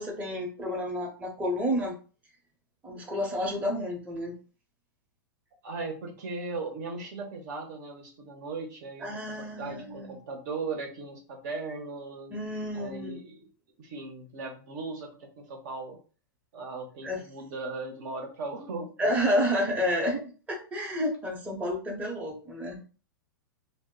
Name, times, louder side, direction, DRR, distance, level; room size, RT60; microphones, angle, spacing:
voice 1, 0.0-2.0 2.8-4.4 9.0-10.2 12.3-13.2 17.0-17.2 19.0-20.2 20.5-22.8, equal, 10° right, -1 dB, 0.7 m, -30 dB
voice 2, 5.6-12.4 12.7-13.5 13.8-16.0 16.5-19.1, right 3 dB, 60° right, 3 dB, 0.8 m, -38 dB
2.1 x 2.0 x 3.7 m, 0.37 s
hypercardioid pair, 125°, 11 cm